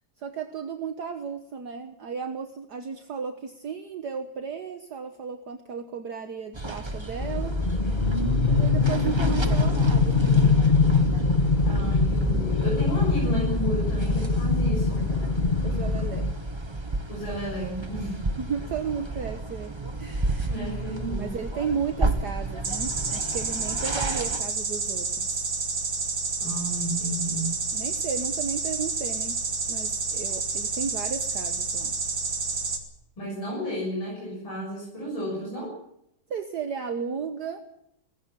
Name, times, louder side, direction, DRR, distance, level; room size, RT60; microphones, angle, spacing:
voice 1, 0.2-7.6 8.5-10.6 15.6-16.3 18.0-18.1 18.4-25.5 27.7-29.4 29.7-32.0 36.3-37.6, right 6 dB, 55° right, 7 dB, 1.7 m, -34 dB
sound 1, 6.5-24.4, right 2 dB, 15° right, 1.3 m, -32 dB
sound 2, 7.2-16.3, left 4 dB, 30° left, 1.2 m, -23 dB
voice 2, 11.7-15.1 17.1-18.2 20.5-21.3 26.4-27.6 33.2-35.8, right 1 dB, 85° left, -4 dB, 7.7 m, -32 dB
sound 3, 22.6-32.8, right 4 dB, 80° right, 3.5 m, -29 dB
19.0 x 16.5 x 10.0 m, 0.78 s
omnidirectional pair, 2.2 m